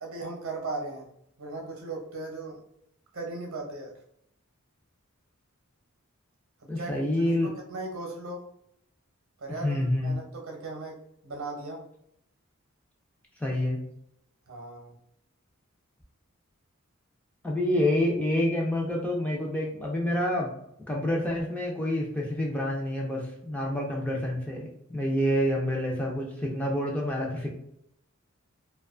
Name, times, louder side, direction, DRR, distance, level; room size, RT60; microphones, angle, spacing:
voice 1, 0.0-1.1 1.4-2.6 3.1-3.9 6.8-7.1 7.4-8.5 9.4-11.0 11.2-11.8 14.5-15.0, right 2 dB, 65° right, 0 dB, 0.7 m, -37 dB
voice 2, 6.7-7.5 9.6-10.1 13.4-13.8 17.4-20.5 20.9-27.5, left 1 dB, 5° left, -2 dB, 0.3 m, -28 dB
2.4 x 2.2 x 2.4 m, 0.74 s
head